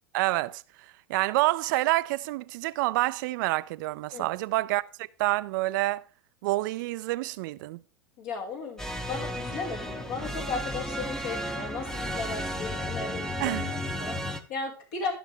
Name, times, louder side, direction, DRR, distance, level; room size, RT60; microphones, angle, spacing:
voice 1, 0.1-0.6 1.1-4.8 5.2-6.0 6.4-7.8 13.4-13.7, right 19 dB, 55° right, 0.4 m, -27 dB
voice 2, 8.2-15.1, left 4 dB, 55° left, 2.2 m, -36 dB
sound 1, 8.8-14.4, equal, 5° left, 0.8 m, -33 dB
13.0 x 6.1 x 3.3 m
figure-of-eight pair, 90°, 13 cm